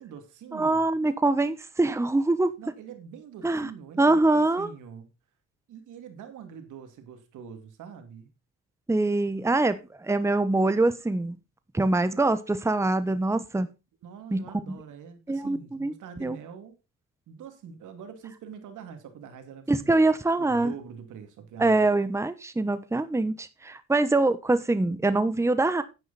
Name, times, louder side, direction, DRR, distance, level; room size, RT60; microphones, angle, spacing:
voice 1, 0.0-0.9 2.6-5.1 5.7-8.3 14.0-16.8 17.3-20.0 20.4-21.9, right 7 dB, 80° right, 2.5 m, -44 dB
voice 2, 0.5-2.5 3.4-3.7 4.0-4.7 8.9-11.4 11.7-13.7 14.3-14.8 15.3-15.9 16.2-16.4 19.7-20.7 21.6-25.8, right 2 dB, 10° right, 1.0 m, -24 dB
9.6 x 9.4 x 4.1 m
cardioid pair, 90°, 30 cm